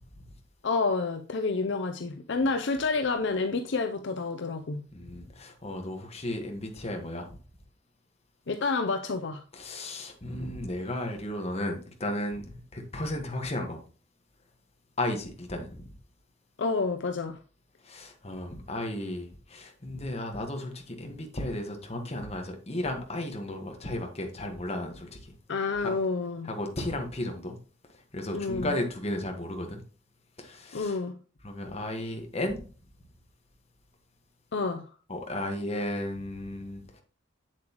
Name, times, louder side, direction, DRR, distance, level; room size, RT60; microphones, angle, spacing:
voice 1, 0.6-4.8 8.5-9.4 16.6-17.4 25.5-26.5 28.3-28.7 30.7-31.2 34.5-34.8, left 4 dB, 60° left, 0.6 m, -29 dB
voice 2, 4.9-7.3 9.5-13.8 15.0-15.9 17.8-25.3 25.8-25.9 26.5-27.6 28.1-29.8 30.4-30.9 31.4-32.6 35.1-37.0, left 1 dB, 30° left, 1.5 m, -34 dB
7.9 x 7.5 x 3.0 m
head